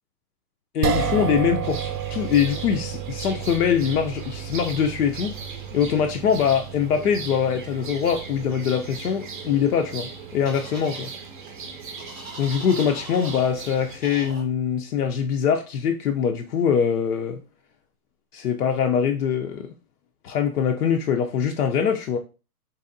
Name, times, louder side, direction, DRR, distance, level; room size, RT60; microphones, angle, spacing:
voice 1, 0.7-5.3 5.7-11.1 12.4-17.4 18.3-19.7 20.2-22.2, left 7 dB, 75° left, 0.6 m, -23 dB
sound 1, 0.8-13.1, right 7 dB, 90° right, 0.6 m, -33 dB
sound 2, 1.6-14.0, right 4 dB, 35° right, 0.5 m, -39 dB
sound 3, 10.5-11.1 12.0-13.5 14.0-14.4, right 2 dB, ahead, 0.7 m, -40 dB
4.0 x 3.0 x 2.6 m
hypercardioid pair, 170°, 46 cm